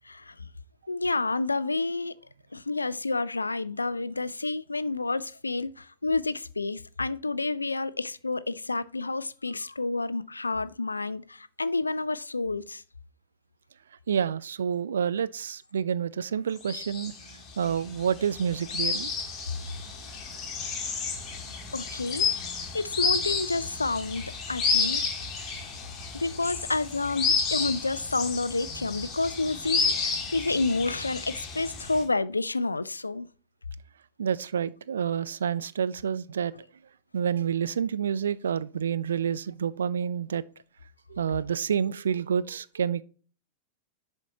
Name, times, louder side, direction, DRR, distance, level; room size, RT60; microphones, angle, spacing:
voice 1, 0.9-2.1 2.5-12.8 21.7-22.3 22.7-25.0 26.1-33.3, left 3 dB, 80° left, 0.3 m, -29 dB
voice 2, 14.1-17.1 17.6-19.1 34.2-36.5 37.1-40.4 41.1-43.0, right 8 dB, 65° right, 0.3 m, -28 dB
sound 1, 16.6-32.0, left 5 dB, 30° left, 2.0 m, -31 dB
10.5 x 4.5 x 2.8 m
figure-of-eight pair, 90°, 0 cm